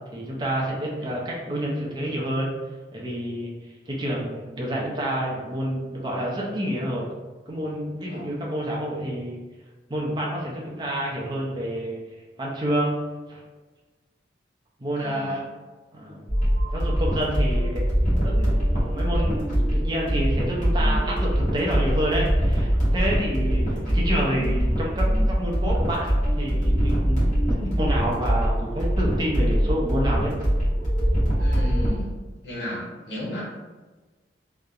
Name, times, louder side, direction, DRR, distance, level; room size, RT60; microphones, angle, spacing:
voice 1, 0.1-2.5 2.9-3.5 3.9-7.1 7.5-9.4 9.9-12.0 12.4-13.0 13.3-13.4 14.8-15.4 15.9-16.3 16.7-18.5 18.9-27.3 27.6-30.3, equal, 25° right, -3 dB, 0.4 m, -28 dB
voice 2, 15.0-15.4 31.4-32.2 32.4-33.4, left 1 dB, 75° left, -5 dB, 0.8 m, -34 dB
sound 1, 16.3-31.9, equal, 45° left, 0.9 m, -23 dB
2.7 x 2.0 x 2.3 m, 1.3 s
head